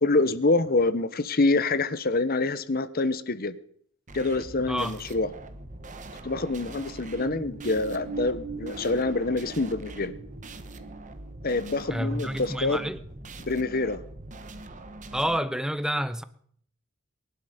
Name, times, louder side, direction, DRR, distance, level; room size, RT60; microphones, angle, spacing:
voice 1, 0.0-3.6 4.1-5.3 6.2-10.1 11.4-12.8 13.4-14.0, left 3 dB, 45° left, 0.9 m, -26 dB
sound 1, 4.1-15.4, right 2 dB, 35° right, 1.2 m, -43 dB
voice 2, 4.7-5.0 11.9-13.0 15.1-16.2, equal, 5° right, 0.7 m, -29 dB
sound 2, 6.5-12.8 13.2-13.3, right 4 dB, 60° right, 1.4 m, -42 dB
22.5 x 12.0 x 5.1 m
head